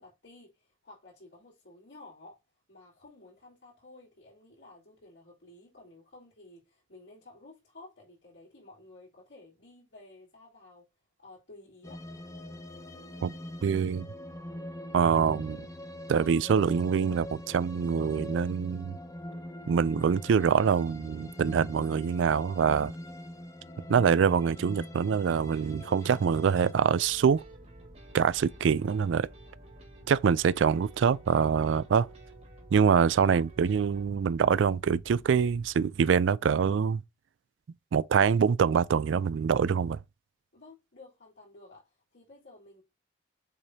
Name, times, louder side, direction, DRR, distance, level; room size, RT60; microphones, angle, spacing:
voice 1, 0.0-2.4 2.7-10.9 11.2-12.0 40.5-42.8, left 2 dB, 80° left, 3.8 m, -53 dB
sound 1, 11.8-26.7, left 1 dB, 15° left, 0.6 m, -43 dB
voice 2, 13.2-14.1 14.9-15.7 16.1-19.0 19.7-22.9 23.9-27.4 28.1-29.3 30.1-32.1 32.7-37.0 37.9-40.0, right 6 dB, 85° right, 0.4 m, -25 dB
sound 2, 25.3-34.1, right 3 dB, 35° right, 1.6 m, -54 dB
sound 3, 27.0-35.7, equal, 50° left, 1.7 m, -52 dB
7.3 x 4.9 x 2.7 m
head